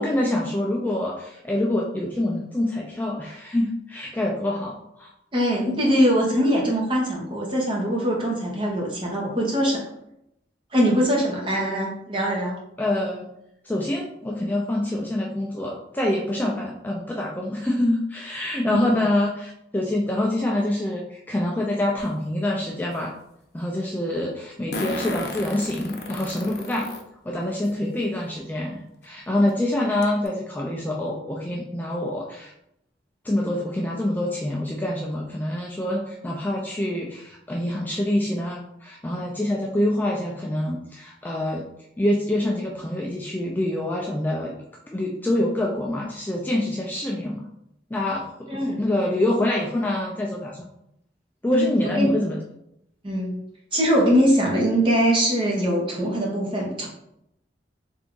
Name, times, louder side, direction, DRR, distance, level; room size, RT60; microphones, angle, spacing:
voice 1, 0.0-5.1 12.8-13.3 13.6-23.1 23.5-26.9 27.2-32.5 33.2-41.6 42.0-44.5 44.9-47.4 47.9-50.7 51.4-52.4, left 1 dB, 10° left, -2 dB, 0.3 m, -26 dB
voice 2, 5.3-9.8 10.7-12.6 18.6-18.9 48.5-48.8 51.5-52.1 53.0-53.4 53.7-56.9, equal, 30° right, -2 dB, 0.9 m, -22 dB
Fart, 22.0-22.1 24.7-27.0 27.7-27.8 29.0-29.1 29.5-29.6 30.0-30.3, left 2 dB, 60° left, 0.6 m, -33 dB
3.4 x 2.5 x 3.7 m, 0.79 s
head